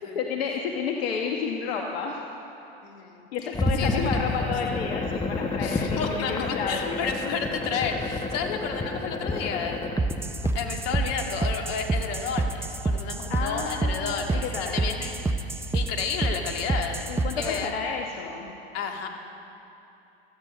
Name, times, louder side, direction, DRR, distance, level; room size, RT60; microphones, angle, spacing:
voice 1, 0.1-2.2 3.3-7.0 13.3-14.9 17.1-17.3 17.6-18.5, left 6 dB, 70° left, 2 dB, 1.3 m, -31 dB
voice 2, 2.8-3.3 3.8-4.8 5.6-10.2 10.5-15.1 15.7-17.1 17.4-17.7 18.7-19.1, left 6 dB, 50° left, 3 dB, 2.0 m, -32 dB
sound 1, 3.5-11.0, left 3 dB, 10° left, 1.2 m, -30 dB
sound 2, 10.0-17.6, right 2 dB, 10° right, 0.6 m, -28 dB
16.5 x 14.5 x 5.1 m, 2.9 s
hypercardioid pair, 90°, 31 cm